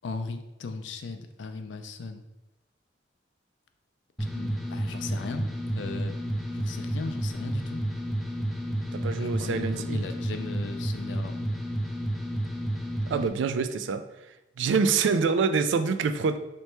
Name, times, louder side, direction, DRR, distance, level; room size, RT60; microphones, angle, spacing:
voice 1, 0.0-2.2 4.3-6.1 6.5-7.8 9.2-11.5, left 3 dB, 85° left, 7 dB, 0.4 m, -37 dB
sound 1, 4.2-13.3, equal, ahead, 0.3 m, -31 dB
voice 2, 8.9-10.1 13.1-14.1 14.6-16.4, right 5 dB, 85° right, 11 dB, 0.3 m, -26 dB
3.2 x 3.0 x 4.5 m, 0.95 s
head